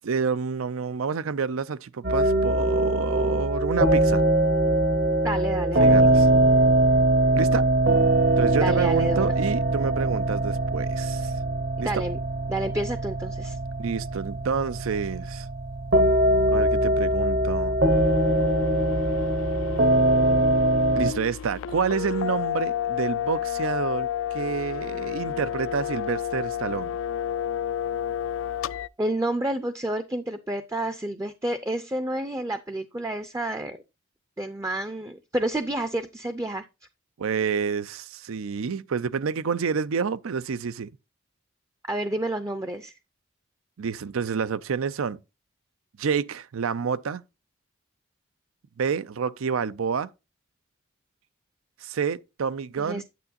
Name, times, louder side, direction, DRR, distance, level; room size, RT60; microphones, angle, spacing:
voice 1, 0.0-4.2 5.8-6.3 7.3-7.6 8.4-11.3 11.8-11.9 13.8-15.5 16.5-17.8 20.9-24.1 24.3-27.0 37.2-40.9 43.8-45.2 46.0-47.2 48.8-50.1 51.8-53.0, right 6 dB, 85° right, 0.5 m, -28 dB
sound 1, 2.0-21.1, right 1 dB, 50° right, 0.9 m, -22 dB
voice 2, 5.2-6.1 8.6-9.3 11.8-12.2 12.5-13.6 29.0-33.8 34.4-36.7 41.9-42.9 52.8-53.0, right 1 dB, 15° right, 0.4 m, -29 dB
sound 2, 17.9-28.9, left 9 dB, 75° left, 0.3 m, -31 dB
9.3 x 8.5 x 2.6 m
head